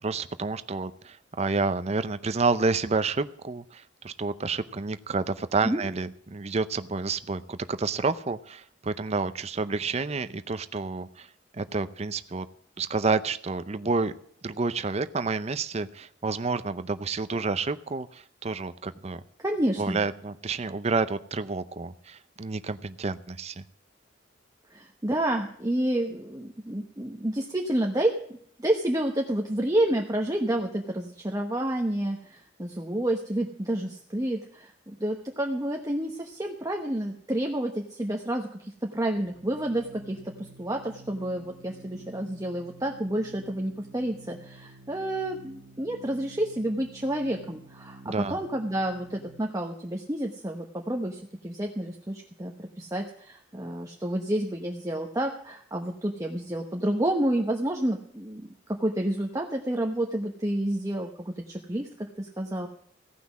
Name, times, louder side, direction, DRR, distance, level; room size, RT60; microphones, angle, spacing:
voice 1, 0.0-11.3 11.5-12.5 12.8-14.1 14.4-19.2 19.8-23.6 48.0-48.4, right 4 dB, 35° right, 12 dB, 0.6 m, -29 dB
voice 2, 19.4-20.0 24.7-62.7, right 1 dB, 20° right, 1 dB, 1.0 m, -29 dB
Organ, 38.9-49.7, right 2 dB, 60° right, 1.0 m, -50 dB
16.0 x 5.9 x 8.3 m, 0.64 s
head